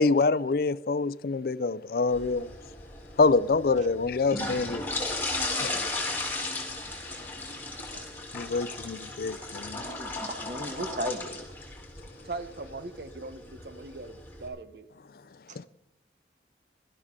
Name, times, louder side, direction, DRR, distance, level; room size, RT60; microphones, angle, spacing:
voice 1, 0.0-2.5 3.2-4.8 5.6-5.7 8.3-9.8 15.6-15.7, left 4 dB, 55° left, 0.4 m, -26 dB
sound 1, 2.1-14.5, left 2 dB, 10° left, 2.8 m, -36 dB
voice 2, 9.7-11.4 15.5-15.6, equal, 45° right, 1.3 m, -36 dB
voice 3, 12.2-14.9, right 3 dB, 60° right, 0.8 m, -40 dB
18.0 x 12.5 x 3.7 m
head